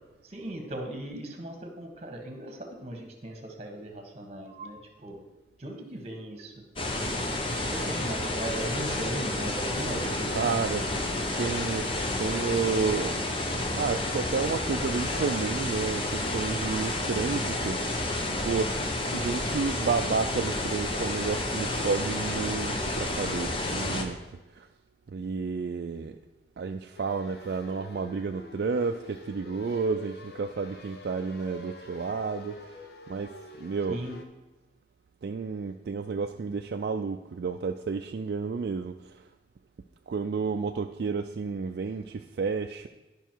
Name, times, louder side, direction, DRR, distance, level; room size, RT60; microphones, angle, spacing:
voice 1, 0.2-5.2 5.6-6.5 7.7-11.4 33.9-34.1, right 1 dB, 35° right, 3 dB, 1.4 m, -38 dB
sound 1, 6.8-24.0, left 1 dB, 30° left, 0.9 m, -30 dB
voice 2, 10.3-10.8 11.4-11.9 12.2-13.3 13.8-18.1 18.4-18.8 19.1-24.2 24.5-24.7 25.1-26.2 26.6-32.6 33.1-34.0 35.2-39.2 40.1-42.9, right 5 dB, 60° right, 5 dB, 0.4 m, -31 dB
sound 2, 26.9-34.2, left 1 dB, 60° left, 0.9 m, -47 dB
11.0 x 5.6 x 4.5 m, 1.1 s
head